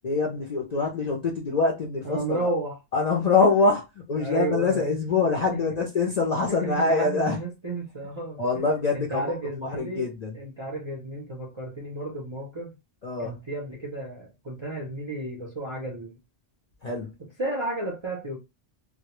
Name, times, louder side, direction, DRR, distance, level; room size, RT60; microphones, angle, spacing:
voice 1, 0.0-2.5 2.9-7.4 8.4-10.4 13.0-13.4 16.8-17.2, left 4 dB, 55° left, 0.4 m, -25 dB
voice 2, 2.0-2.8 4.2-5.0 5.5-6.1 6.5-8.4 8.9-12.7 13.2-16.2 17.2-18.4, right 2 dB, 40° right, 0.4 m, -33 dB
2.1 x 2.1 x 2.9 m
omnidirectional pair, 1.2 m